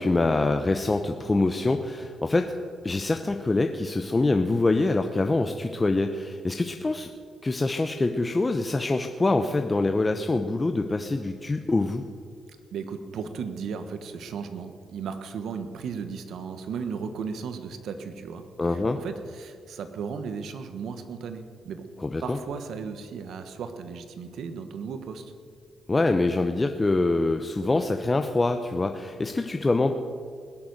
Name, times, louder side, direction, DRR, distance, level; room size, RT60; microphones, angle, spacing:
voice 1, 0.0-2.5 2.8-7.1 7.4-12.0 18.6-19.0 22.0-22.4 25.9-30.0, left 2 dB, 25° left, 6 dB, 0.8 m, -25 dB
voice 2, 12.7-18.4 18.9-21.8 22.2-25.3, right 6 dB, 80° right, 9 dB, 1.2 m, -35 dB
20.5 x 6.9 x 7.9 m, 2.2 s
cardioid pair, 70°, 0 cm